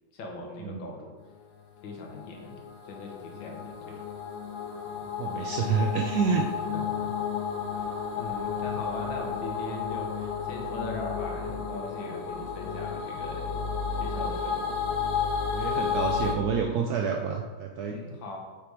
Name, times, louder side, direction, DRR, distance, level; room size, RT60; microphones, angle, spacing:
voice 1, 0.1-1.1 1.8-4.0 6.7-7.1 7.8-13.6 13.9-14.9 17.8-18.4, left 2 dB, 90° left, 0 dB, 1.8 m, -40 dB
sound 1, 1.5-16.3, left 6 dB, 65° left, 1.1 m, -32 dB
voice 2, 5.2-6.5 15.5-18.0, right 6 dB, 75° right, 1 dB, 0.9 m, -28 dB
6.7 x 3.3 x 4.6 m, 1.3 s
omnidirectional pair, 2.0 m